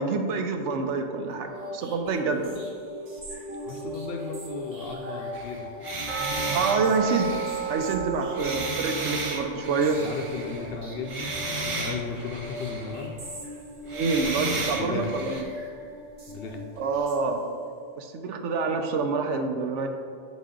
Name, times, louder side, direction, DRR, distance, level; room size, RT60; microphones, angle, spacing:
voice 1, 0.0-2.5 6.5-7.3 7.7-10.0 13.9-15.4 16.8-17.4 18.0-19.9, right 4 dB, 75° right, 5 dB, 0.9 m, -27 dB
sound 1, 1.3-17.7, left 1 dB, 60° right, 1.2 m, -40 dB
voice 2, 3.6-5.7 9.9-13.1 14.8-15.1 16.3-16.6, left 4 dB, 60° left, 3 dB, 0.7 m, -35 dB
sound 2, 5.3-10.8 11.0-13.1 13.9-15.4, right 3 dB, 40° right, 0.5 m, -33 dB
sound 3, 6.1-12.9 13.2-13.3 13.8-13.9 14.5-14.6, right 7 dB, 10° right, 1.2 m, -35 dB
7.3 x 4.1 x 3.7 m, 2.1 s
omnidirectional pair, 1.3 m